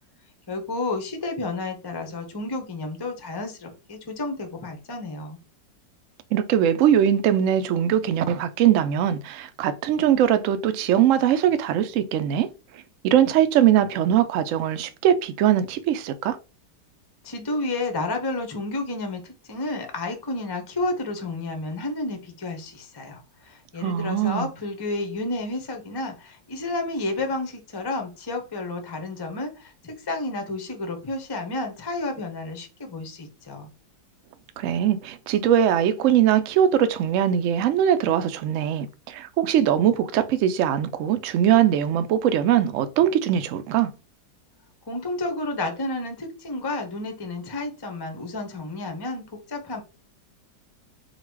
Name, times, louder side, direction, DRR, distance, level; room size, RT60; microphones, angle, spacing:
voice 1, 0.5-5.4 17.2-33.7 44.9-49.8, left 2 dB, 30° left, 0.4 m, -31 dB
voice 2, 6.3-12.5 13.0-16.4 23.8-24.5 34.6-43.9, right 10 dB, 85° right, 0.6 m, -21 dB
3.9 x 2.3 x 4.5 m
omnidirectional pair, 1.9 m